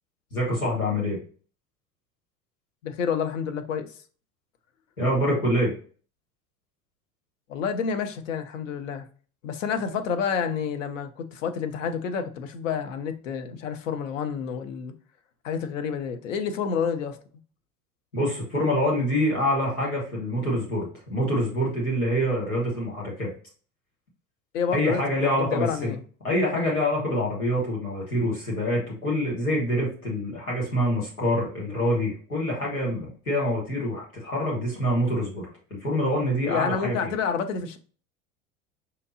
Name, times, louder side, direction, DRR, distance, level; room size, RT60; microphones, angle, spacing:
voice 1, 0.3-1.2 5.0-5.7 18.1-23.3 24.7-25.9 26.2-37.1, equal, 85° left, 1.6 m, -26 dB
voice 2, 2.8-3.9 7.5-9.0 9.4-14.9 15.4-17.2 24.5-26.0 36.5-37.8, left 6 dB, 60° left, 0.7 m, -29 dB
5.1 x 2.8 x 2.7 m
figure-of-eight pair, 75°, 43 cm